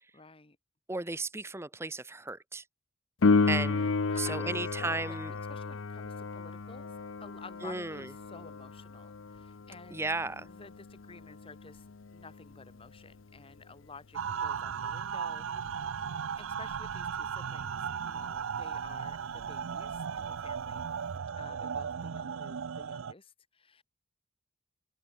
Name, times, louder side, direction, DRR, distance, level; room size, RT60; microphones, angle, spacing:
voice 1, 0.1-0.6 4.0-5.2 5.5-10.0 10.4-15.9 16.4-20.9 21.4-23.8, left 3 dB, 25° left, 1.3 m, -52 dB
voice 2, 0.9-2.6 3.5-5.3 7.6-8.1 9.9-10.5, right 2 dB, 10° right, 0.9 m, -35 dB
Piano, 3.2-13.6 21.2-21.3, left 4 dB, 70° left, 0.7 m, -33 dB
sound 1, 14.1-23.1, right 7 dB, 75° right, 0.5 m, -36 dB
open air
head